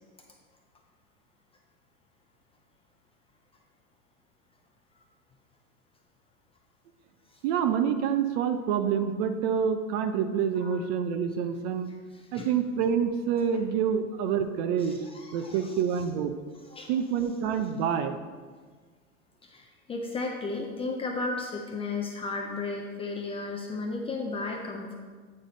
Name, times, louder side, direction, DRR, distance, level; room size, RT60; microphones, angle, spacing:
voice 1, 7.4-11.9 12.3-15.0 15.3-16.3 16.9-18.2, right 7 dB, 45° right, 8 dB, 0.6 m, -27 dB
voice 2, 12.1-12.5 14.8-15.8 16.6-16.9 19.4-24.9, left 3 dB, 15° left, 1 dB, 0.4 m, -34 dB
8.6 x 4.8 x 3.9 m, 1.5 s
hypercardioid pair, 115°, 43 cm